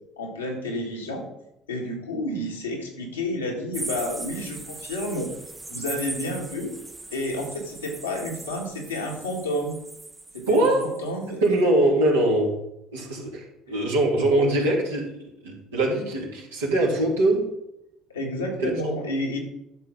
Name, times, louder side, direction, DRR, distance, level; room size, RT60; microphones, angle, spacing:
voice 1, 0.2-1.3 1.7-5.3 5.7-6.7 7.1-9.8 10.3-11.4 18.1-19.4, left 1 dB, 85° left, -1 dB, 2.0 m, -30 dB
sound 1, 3.7-11.1 11.4-11.6, right 2 dB, 20° right, 0.7 m, -39 dB
voice 2, 10.5-10.9 11.4-12.6 12.9-17.5 18.6-18.7, right 1 dB, 80° right, -3 dB, 2.4 m, -22 dB
12.0 x 6.5 x 3.9 m, 0.84 s
figure-of-eight pair, 55°, 0 cm